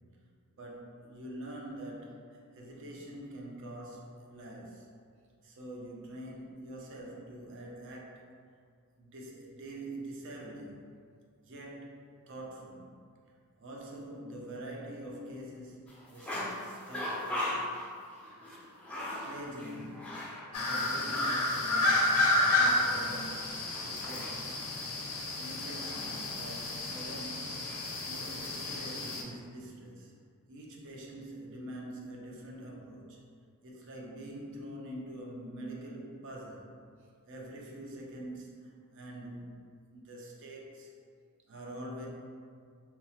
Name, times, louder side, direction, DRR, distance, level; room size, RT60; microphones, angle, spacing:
voice 1, 0.6-4.9 5.4-8.3 9.0-10.9 11.4-12.9 13.6-17.6 18.5-18.6 18.9-24.6 25.4-27.6 28.1-30.1 30.5-33.2 33.6-36.8 37.3-39.6 39.9-40.9 41.5-42.1, right 1 dB, 55° right, -2 dB, 0.4 m, -45 dB
sound 1, 15.9-21.3 21.6-21.7 23.2-27.9 28.4-28.8, left 1 dB, 5° left, 0.4 m, -40 dB
sound 2, 20.5-29.2, left 2 dB, 80° left, 0.5 m, -31 dB
2.8 x 2.0 x 2.8 m, 2.2 s
head